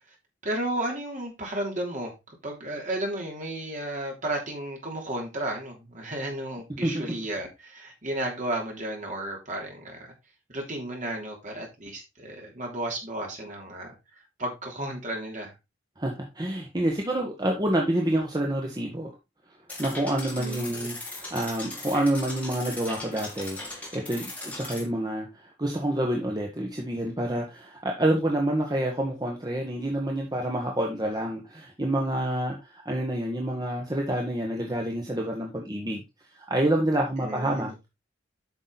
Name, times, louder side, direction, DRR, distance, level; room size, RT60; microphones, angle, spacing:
voice 1, 0.4-2.1 2.4-10.1 10.5-13.9 14.4-15.5 20.4-21.0 37.2-37.7, right 1 dB, 40° right, 3.3 m, -33 dB
voice 2, 16.0-19.1 19.8-36.0 36.3-37.9, right 1 dB, 20° right, 1.4 m, -28 dB
sound 1, 19.7-24.8, left 2 dB, 10° left, 2.6 m, -38 dB
8.5 x 6.2 x 4.0 m
head